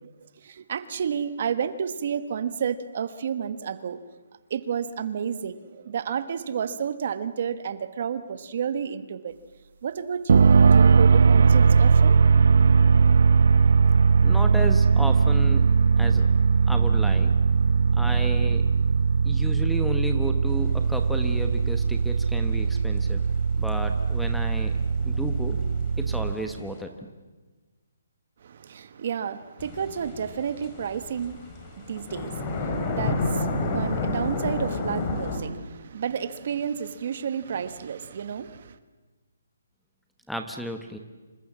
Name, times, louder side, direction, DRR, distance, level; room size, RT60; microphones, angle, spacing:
voice 1, 0.0-4.0 4.5-9.4 9.8-12.2 28.4-38.8, right 7 dB, 45° right, 1.3 m, -31 dB
sound 1, 10.3-26.3, right 5 dB, 60° right, 0.7 m, -20 dB
voice 2, 14.2-15.7 16.0-16.3 16.7-17.3 18.0-18.7 19.2-23.2 23.6-24.7 25.0-25.6 26.0-26.9 40.3-41.0, equal, ahead, 1.1 m, -33 dB
sound 2, 20.5-26.8 29.6-35.4, left 3 dB, 20° left, 3.1 m, -32 dB
27.5 x 25.0 x 7.5 m
hypercardioid pair, 170°, 0 cm